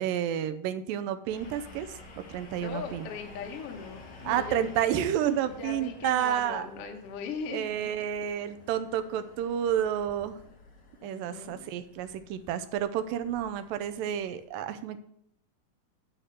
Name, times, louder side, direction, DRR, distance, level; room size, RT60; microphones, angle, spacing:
voice 1, 0.0-3.1 4.3-6.7 7.5-10.4 11.0-15.0, right 10 dB, 80° right, 10 dB, 2.2 m, -30 dB
sound 1, 1.3-14.4, left 2 dB, 45° left, 1.7 m, -51 dB
voice 2, 2.6-4.9 5.6-7.9 11.0-11.6, left 5 dB, 80° left, 3 dB, 1.3 m, -39 dB
10.0 x 4.4 x 6.6 m, 0.68 s
omnidirectional pair, 4.3 m